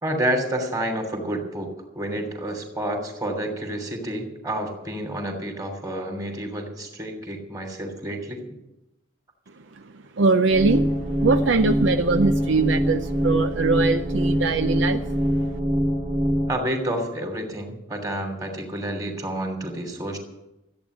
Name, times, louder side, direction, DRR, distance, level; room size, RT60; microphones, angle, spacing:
voice 1, 0.0-8.4 16.5-20.2, right 1 dB, 20° right, 3 dB, 2.8 m, -29 dB
voice 2, 10.2-10.9 11.2-15.0, right 3 dB, 70° right, 9 dB, 0.6 m, -21 dB
sound 1, 10.5-16.5, equal, 45° right, 2.3 m, -24 dB
14.5 x 8.9 x 8.3 m, 0.91 s
head